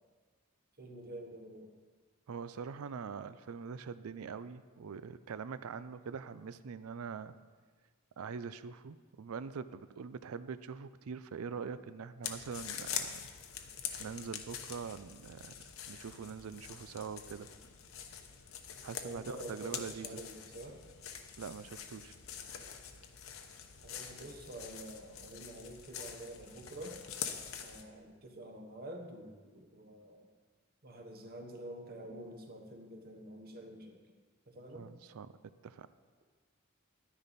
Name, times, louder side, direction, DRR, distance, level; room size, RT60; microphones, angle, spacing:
voice 1, 0.8-1.7 19.0-20.8 23.8-27.0 27.6-30.3 30.8-34.0 34.5-34.9, right 1 dB, 45° right, 4 dB, 1.2 m, -48 dB
voice 2, 2.3-7.3 8.2-13.3 14.0-15.5 15.9-17.5 18.8-20.2 21.4-22.2 34.7-35.3 35.6-35.9, right 6 dB, 80° right, 14 dB, 0.4 m, -43 dB
sound 1, 12.2-27.8, left 8 dB, 70° left, 0.9 m, -45 dB
12.0 x 9.9 x 4.2 m, 1.5 s
head